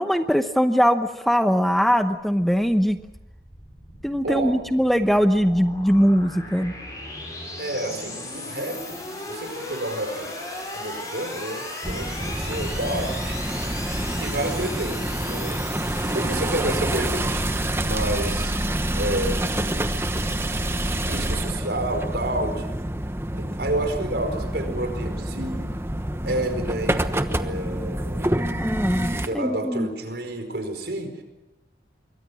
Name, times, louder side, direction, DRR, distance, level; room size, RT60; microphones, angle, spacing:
voice 1, 0.0-3.0 4.0-6.7 28.6-29.9, equal, ahead, 8 dB, 0.8 m, -21 dB
sound 1, 2.3-20.8, left 2 dB, 20° left, 7.1 m, -38 dB
voice 2, 4.2-4.6 7.6-9.0 9.3-10.3 10.7-13.4 14.2-15.6 16.1-18.5 18.9-22.8 23.3-25.7 26.2-27.0 27.4-28.5 28.8-31.2, right 1 dB, 75° right, 6 dB, 4.8 m, -30 dB
sound 2, 11.8-29.3, right 1 dB, 15° right, 1.0 m, -27 dB
27.0 x 22.5 x 6.3 m, 0.97 s
head